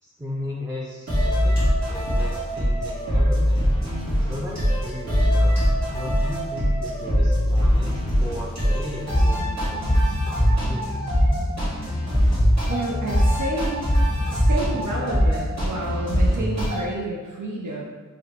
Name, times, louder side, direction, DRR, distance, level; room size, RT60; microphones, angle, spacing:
voice 1, 0.0-3.6 4.3-5.6 5.9-11.1, left 1 dB, 10° right, -5 dB, 0.4 m, -36 dB
sound 1, 1.1-16.8, equal, 60° right, 1.3 m, -22 dB
voice 2, 12.7-13.9 14.3-17.8, right 2 dB, 80° right, -2 dB, 0.5 m, -29 dB
3.7 x 2.2 x 3.5 m, 1.4 s
wide cardioid pair, 40°, 30 cm